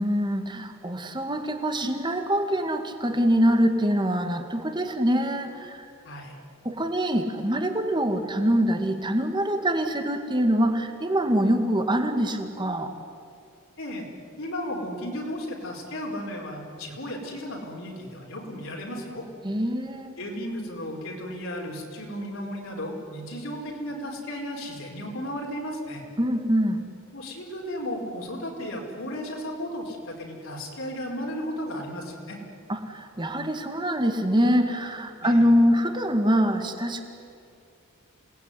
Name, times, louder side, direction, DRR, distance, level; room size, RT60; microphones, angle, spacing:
voice 1, 0.0-5.9 6.6-12.9 19.4-20.1 26.2-26.8 32.7-37.0, equal, 20° right, 6 dB, 2.0 m, -24 dB
voice 2, 14.4-19.2 20.2-26.0 27.1-32.4 35.2-35.5, equal, 65° left, 0 dB, 4.9 m, -34 dB
27.5 x 19.5 x 9.9 m, 2.4 s
head